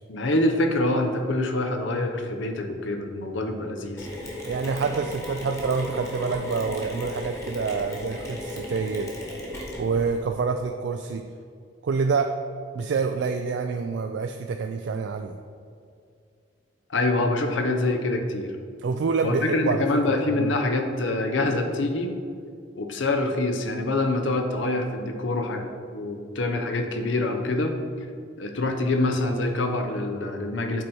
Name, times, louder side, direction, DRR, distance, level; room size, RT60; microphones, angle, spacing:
voice 1, 0.1-4.1 16.9-18.5 19.2-22.2 22.8-27.8 28.4-30.8, left 2 dB, 80° left, 5 dB, 0.8 m, -25 dB
Mechanisms, 4.0-10.2, left 1 dB, 15° left, 1.3 m, -35 dB
voice 2, 4.4-9.1 9.8-11.3 11.8-12.3 12.7-15.4 18.8-19.8 20.4-20.6, right 5 dB, 65° right, 5 dB, 0.3 m, -27 dB
8.1 x 4.3 x 4.6 m, 2.3 s
head